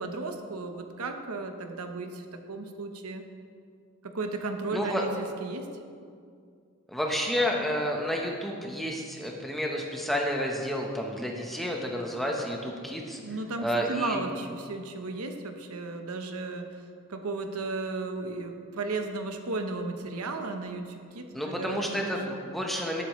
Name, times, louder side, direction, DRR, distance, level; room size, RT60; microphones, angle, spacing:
voice 1, 0.0-3.3 4.0-5.7 13.2-16.8 17.1-22.4, right 3 dB, 90° right, 5 dB, 0.9 m, -35 dB
voice 2, 4.7-5.0 6.9-13.2 13.6-14.2 21.3-23.0, equal, ahead, -1 dB, 1.0 m, -30 dB
18.0 x 8.3 x 3.2 m, 2.3 s
head